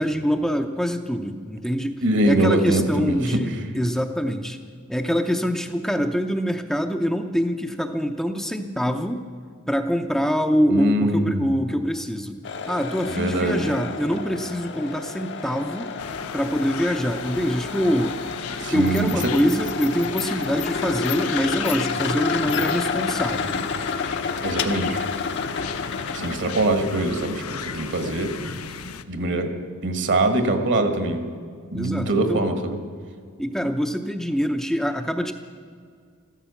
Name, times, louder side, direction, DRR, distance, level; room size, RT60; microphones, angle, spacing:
voice 1, 0.0-1.9 2.2-4.6 4.9-9.2 9.7-12.4 12.7-15.9 16.3-18.2 18.7-23.6 31.7-32.5 33.4-35.3, equal, ahead, 4 dB, 0.6 m, -24 dB
voice 2, 2.0-3.6 10.7-11.5 13.1-13.7 18.6-19.2 24.4-25.1 26.1-28.3 29.1-29.5 29.8-31.3 31.7-32.8, right 2 dB, 55° right, 8 dB, 1.6 m, -23 dB
sound 1, 12.4-26.8, left 5 dB, 55° left, 0.9 m, -29 dB
sound 2, 16.0-29.0, left 6 dB, 85° left, 0.8 m, -36 dB
14.0 x 13.0 x 7.0 m, 2.1 s
head